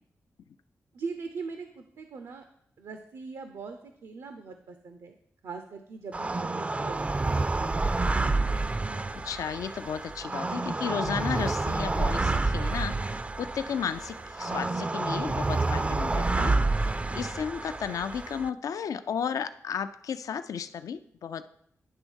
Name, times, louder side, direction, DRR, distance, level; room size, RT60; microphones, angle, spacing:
voice 1, 0.9-2.4 2.8-5.1 5.4-7.5, right 4 dB, 85° right, 6 dB, 0.6 m, -41 dB
sound 1, 6.1-18.5, right 3 dB, 20° right, 0.3 m, -29 dB
voice 2, 9.1-12.9 13.4-21.5, left 7 dB, 85° left, 11 dB, 0.4 m, -34 dB
10.0 x 3.5 x 6.3 m, 0.68 s
cardioid pair, 80°, 6 cm